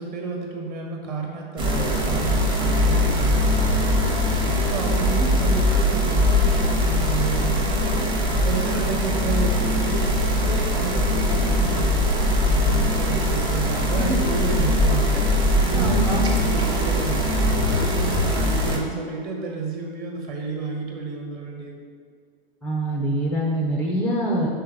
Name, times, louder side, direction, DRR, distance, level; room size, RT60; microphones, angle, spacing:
voice 1, 0.0-3.9 4.7-8.0 8.4-10.0 10.3-12.0 12.4-15.3 15.7-17.3 17.7-21.8, right 4 dB, 30° right, 1 dB, 1.2 m, -31 dB
sound 1, 1.6-18.8, left 1 dB, 15° right, 0.8 m, -21 dB
voice 2, 15.7-16.3 22.6-24.5, right 1 dB, 5° left, -2 dB, 0.3 m, -25 dB
5.5 x 4.0 x 5.1 m, 2.1 s
hypercardioid pair, 120°, 30 cm